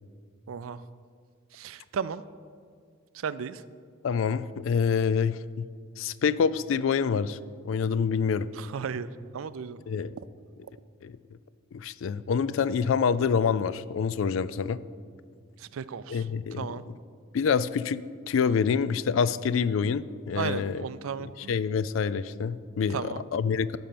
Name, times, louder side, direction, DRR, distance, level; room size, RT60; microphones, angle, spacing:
voice 1, 0.5-0.8 1.5-2.2 3.1-3.6 8.5-9.1 9.3-9.8 15.6-16.8 20.3-21.5 22.9-23.3, right 6 dB, 80° right, 15 dB, 0.4 m, -35 dB
voice 2, 4.0-5.7 6.0-7.4 7.6-8.5 9.9-10.1 11.0-11.2 11.7-14.8 16.1-16.8 17.3-20.8 21.5-23.8, left 6 dB, 70° left, 17 dB, 0.4 m, -26 dB
13.0 x 4.4 x 6.8 m, 2.1 s
head